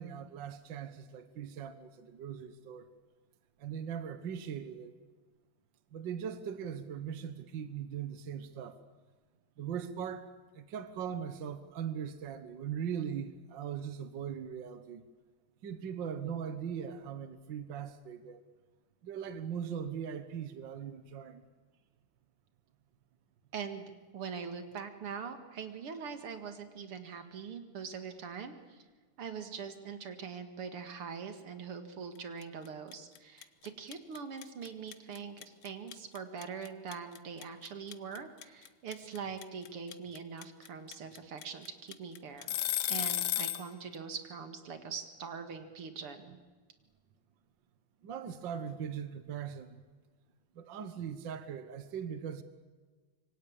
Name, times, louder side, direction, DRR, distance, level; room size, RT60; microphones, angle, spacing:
voice 1, 0.0-2.9 3.6-5.0 5.9-8.8 9.6-10.3 10.5-15.0 15.6-18.4 19.0-21.4 48.0-49.8 50.6-52.4, right 8 dB, 60° right, 11 dB, 1.8 m, -40 dB
voice 2, 23.5-28.8 29.2-42.6 42.9-46.4, right 6 dB, 85° right, 7 dB, 2.9 m, -43 dB
sound 1, 32.4-32.7 32.9-43.7, left 13 dB, 70° left, 1.7 m, -34 dB
26.0 x 23.5 x 8.9 m, 1.4 s
omnidirectional pair, 2.4 m